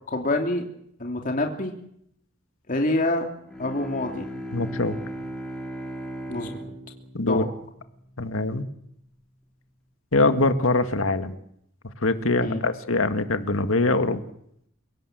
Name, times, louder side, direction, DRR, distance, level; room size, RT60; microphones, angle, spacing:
voice 1, 0.1-0.6 1.0-1.7 2.7-3.3 3.6-4.3 6.3-6.6 7.2-7.5 12.4-12.6, left 2 dB, 40° left, 3 dB, 2.9 m, -26 dB
Bowed string instrument, 3.4-8.2, equal, 5° left, 5.0 m, -37 dB
voice 2, 4.5-5.0 7.1-7.4 8.2-8.7 10.1-11.4 12.0-14.2, left 2 dB, 80° left, 9 dB, 2.0 m, -23 dB
29.0 x 18.0 x 7.9 m, 0.73 s
head